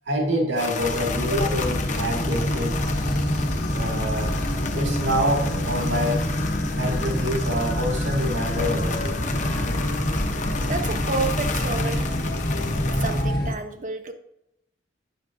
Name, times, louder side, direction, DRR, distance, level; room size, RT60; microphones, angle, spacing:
voice 1, 0.1-2.8 3.6-4.4 4.7-6.3 6.8-9.2, equal, 90° right, 1 dB, 1.8 m, -26 dB
sound 1, 0.6-13.2, left 4 dB, 40° left, 0.8 m, -33 dB
sound 2, 0.8-13.5, equal, 60° left, 1.4 m, -26 dB
voice 2, 10.6-12.1 13.0-14.1, right 3 dB, 45° right, 7 dB, 0.8 m, -30 dB
9.2 x 6.0 x 3.7 m, 0.81 s
head